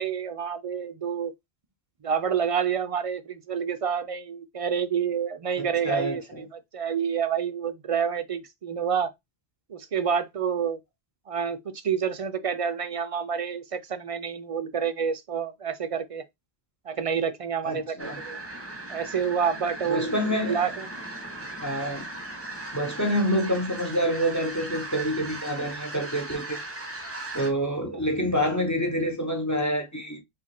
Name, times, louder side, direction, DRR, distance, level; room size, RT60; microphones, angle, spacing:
voice 1, 0.0-1.3 2.0-9.1 9.7-10.8 11.3-16.2 16.9-18.4 18.9-20.1 20.4-20.9, right 7 dB, 50° right, 0.4 m, -28 dB
voice 2, 5.6-6.4 17.7-18.2 19.9-20.7 21.6-22.0 22.7-26.6 27.3-30.2, equal, 15° left, 0.9 m, -27 dB
sound 1, 18.0-27.5, right 2 dB, 15° right, 0.8 m, -38 dB
4.8 x 2.5 x 4.2 m
omnidirectional pair, 1.1 m